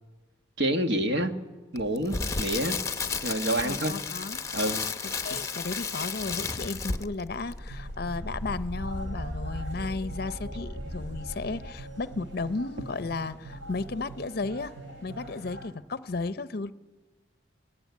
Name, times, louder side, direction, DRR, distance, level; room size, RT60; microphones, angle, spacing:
voice 1, 0.6-1.3 1.7-2.8 3.2-3.9 4.5-4.8, right 1 dB, 60° right, 1.5 m, -27 dB
Crackle, 1.8-7.2 7.5-7.7, left 5 dB, 15° left, 0.8 m, -32 dB
voice 2, 3.6-4.4 5.2-14.7 15.0-16.7, left 3 dB, 50° left, 0.6 m, -34 dB
sound 1, 7.0-12.6 13.1-13.2, equal, 10° right, 2.4 m, -38 dB
sound 2, 7.5-15.7, right 2 dB, 75° right, 4.0 m, -44 dB
19.5 x 19.5 x 9.5 m
head